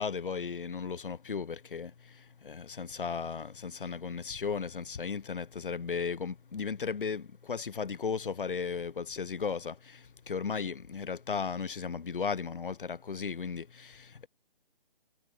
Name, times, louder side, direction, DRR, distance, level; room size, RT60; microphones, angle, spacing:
voice 1, 0.0-14.3, left 5 dB, 65° left, 2.5 m, -36 dB
figure-of-eight pair, 155°, 29 cm